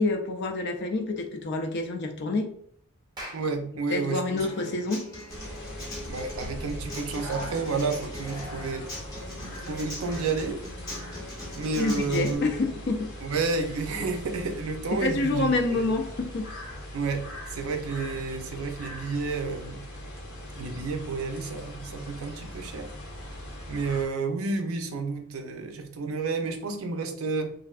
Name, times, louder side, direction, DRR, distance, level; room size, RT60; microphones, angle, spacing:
voice 1, 0.0-2.5 3.9-5.0 11.8-13.1 14.9-16.5, left 3 dB, 50° left, 4 dB, 0.4 m, -27 dB
Clapping, 3.1-7.8, right 1 dB, 20° right, 0.5 m, -48 dB
voice 2, 3.3-4.7 6.1-8.9 9.7-10.6 11.6-12.5 13.2-15.9 16.9-17.2 17.5-19.8 20.6-22.9 23.7-27.5, right 4 dB, 75° right, 6 dB, 0.5 m, -30 dB
Human voice / Acoustic guitar, 4.4-12.4, left 1 dB, 15° left, 0.7 m, -40 dB
sound 1, 5.3-24.1, equal, 75° left, 0.8 m, -41 dB
3.1 x 2.5 x 2.3 m, 0.63 s
head